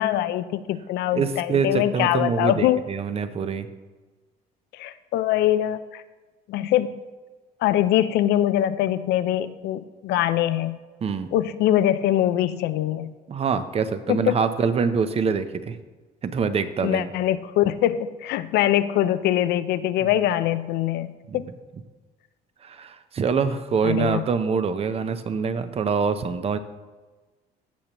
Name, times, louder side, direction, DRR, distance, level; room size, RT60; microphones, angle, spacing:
voice 1, 0.0-2.9 4.7-6.0 6.5-7.0 7.6-10.8 11.3-13.1 14.1-14.4 16.8-21.5 23.8-24.2, left 12 dB, 80° left, 14 dB, 0.5 m, -23 dB
voice 2, 1.1-3.7 11.0-11.3 13.3-15.8 16.2-17.1 21.3-21.4 22.6-26.6, right 5 dB, 35° right, 11 dB, 0.7 m, -25 dB
15.5 x 6.7 x 3.0 m, 1.3 s
cardioid pair, 110°, 17 cm